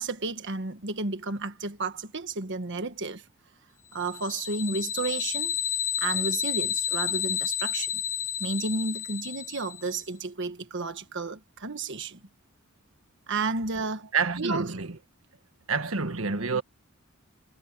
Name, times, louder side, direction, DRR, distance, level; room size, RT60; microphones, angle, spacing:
voice 1, 0.0-3.2 3.9-5.6 6.0-7.9 8.4-12.2 13.3-14.1 14.4-14.7, right 3 dB, 60° right, 1.5 m, -32 dB
sound 1, 4.0-10.0, left 9 dB, 80° left, 1.5 m, -30 dB
voice 2, 14.1-15.0 15.7-16.6, right 4 dB, 85° right, 1.5 m, -28 dB
head